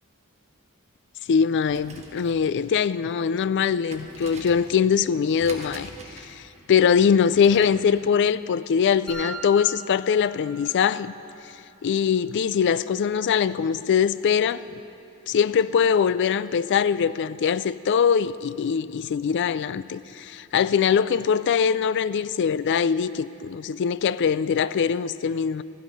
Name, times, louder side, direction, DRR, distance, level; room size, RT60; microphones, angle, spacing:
voice 1, 1.3-6.4 6.7-11.1 11.8-14.6 15.3-25.6, left 7 dB, 55° left, 0.3 m, -22 dB
sound 1, 1.5-7.9, right 2 dB, 30° right, 1.4 m, -45 dB
sound 2, 9.1-11.1, right 1 dB, 5° left, 1.8 m, -39 dB
14.5 x 12.0 x 5.5 m
head